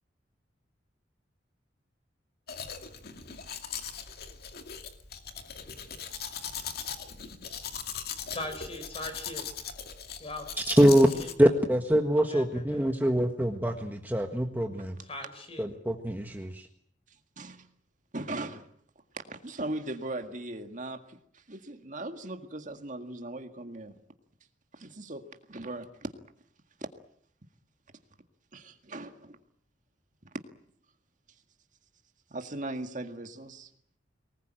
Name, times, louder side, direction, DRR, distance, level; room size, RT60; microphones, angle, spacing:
Domestic sounds home sounds, 2.5-11.3, left 7 dB, 55° left, 2.4 m, -40 dB
voice 1, 8.3-9.5 10.2-10.5 11.1-11.3 12.3-13.0 15.0-15.7, left 1 dB, 30° left, 8 dB, 4.9 m, -40 dB
voice 2, 10.7-11.1 11.4-15.0 15.6-16.7, equal, 10° right, 3 dB, 1.6 m, -24 dB
voice 3, 17.4-17.7 18.1-18.7 19.3-23.9 24.7-25.2 25.5-25.9 28.5-29.4 32.3-33.7, right 2 dB, 45° right, 6 dB, 1.9 m, -38 dB
24.0 x 20.0 x 9.1 m, 0.66 s
head